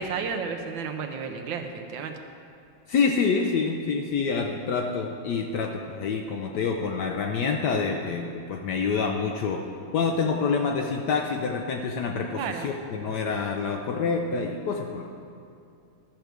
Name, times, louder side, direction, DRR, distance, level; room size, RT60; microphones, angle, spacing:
voice 1, 0.0-2.2 12.4-12.7, right 5 dB, 70° right, 5 dB, 1.3 m, -32 dB
voice 2, 2.9-9.6 9.9-15.0, left 5 dB, 70° left, 2 dB, 1.0 m, -27 dB
12.5 x 4.6 x 6.7 m, 2.5 s
omnidirectional pair, 2.3 m